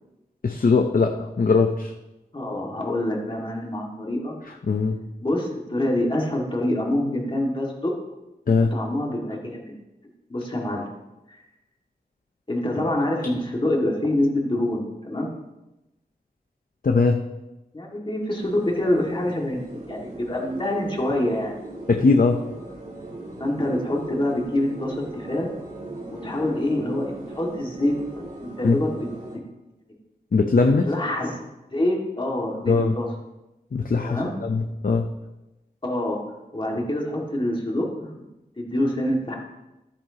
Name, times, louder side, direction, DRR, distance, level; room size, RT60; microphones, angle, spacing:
voice 1, 0.4-1.9 4.7-5.0 8.5-8.7 16.8-17.2 21.9-22.4 28.6-28.8 30.3-30.9 32.7-32.9 33.7-35.1, left 4 dB, 60° left, 4 dB, 0.7 m, -20 dB
voice 2, 2.3-4.3 5.2-7.9 8.6-9.7 10.3-10.8 11.3-11.4 12.5-15.3 17.7-21.5 23.4-25.5 26.1-29.0 30.9-31.4 31.7-33.1 34.0-34.3 35.8-36.2 36.5-38.1 38.6-39.4, left 1 dB, 30° left, -2 dB, 2.1 m, -26 dB
sound 1, 18.3-29.4, right 2 dB, 45° right, 2.5 m, -39 dB
14.0 x 8.6 x 2.9 m, 0.97 s
wide cardioid pair, 90°, 16 cm